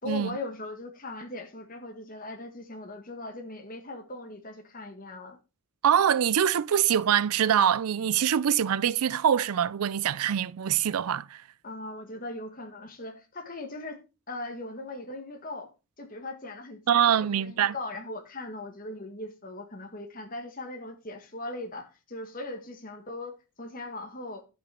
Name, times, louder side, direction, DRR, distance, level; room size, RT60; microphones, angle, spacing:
voice 1, 0.0-5.4 11.6-14.0 14.3-15.7 16.0-24.4, left 2 dB, 40° left, 1.7 m, -39 dB
voice 2, 5.8-11.4 16.9-17.7, right 9 dB, 80° right, 0.4 m, -24 dB
11.0 x 6.2 x 4.3 m
head